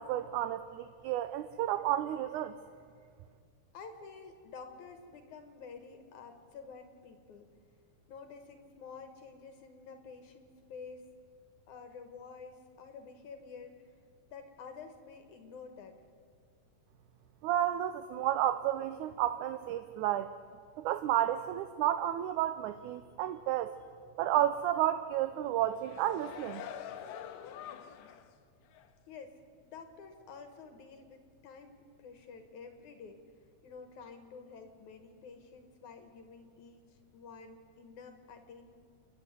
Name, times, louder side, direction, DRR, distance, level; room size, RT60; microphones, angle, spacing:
voice 1, 0.0-2.6 17.4-20.3 20.8-23.7 24.2-26.6, right 12 dB, 80° right, 10 dB, 2.0 m, -31 dB
voice 2, 3.7-7.5 8.1-11.1 11.7-13.9 14.3-16.0 29.1-33.2 33.6-36.8 37.1-38.7, left 5 dB, 70° left, 7 dB, 2.6 m, -50 dB
sound 1, 25.6-28.3 28.7-28.9, left 9 dB, 85° left, 2.5 m, -45 dB
28.5 x 10.5 x 9.3 m, 2.1 s
omnidirectional pair, 3.8 m